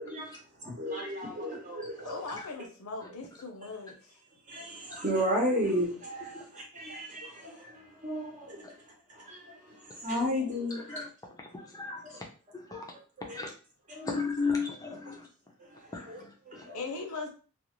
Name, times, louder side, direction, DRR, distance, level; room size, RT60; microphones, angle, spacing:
voice 1, 0.0-2.2 4.5-11.0 12.0-12.2 12.7-12.8 13.3-13.5 13.9-14.2 15.6-17.0, equal, 35° right, 0.9 m, -34 dB
voice 2, 2.0-4.0 16.7-17.3, left 3 dB, 80° left, 0.8 m, -39 dB
voice 3, 11.4-12.2 12.5-12.9 13.3-13.5 14.0-15.3 15.9-16.7, left 4 dB, 15° left, 0.5 m, -35 dB
2.5 x 2.4 x 3.0 m
head